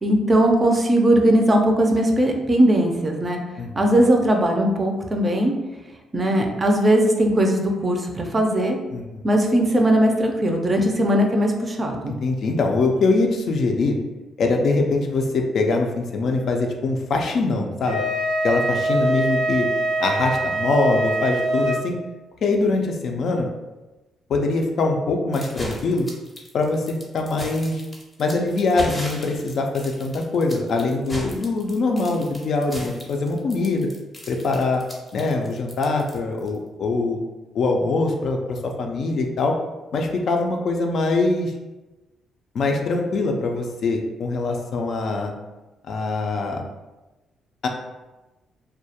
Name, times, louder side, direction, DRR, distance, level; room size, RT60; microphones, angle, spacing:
voice 1, 0.0-3.4 3.7-5.5 6.1-8.8 9.2-12.2, right 1 dB, 30° right, 2 dB, 0.4 m, -19 dB
voice 2, 3.6-4.0 8.9-9.2 12.1-14.0 14.4-18.0 18.4-19.7 20.0-22.0 22.4-23.5 24.3-26.1 26.5-27.8 28.2-33.9 34.3-34.8 35.1-37.2 37.5-39.6 39.9-41.5 42.5-45.3 45.9-46.6 47.6-47.7, left 3 dB, 60° left, 2 dB, 0.3 m, -23 dB
Wind instrument woodwind instrument, 17.8-21.8, right 1 dB, 85° right, 0.5 m, -23 dB
sound 1, 25.3-36.5, left 1 dB, 10° left, 0.6 m, -37 dB
2.2 x 2.1 x 2.8 m, 1.1 s
cardioid pair, 90°, 0 cm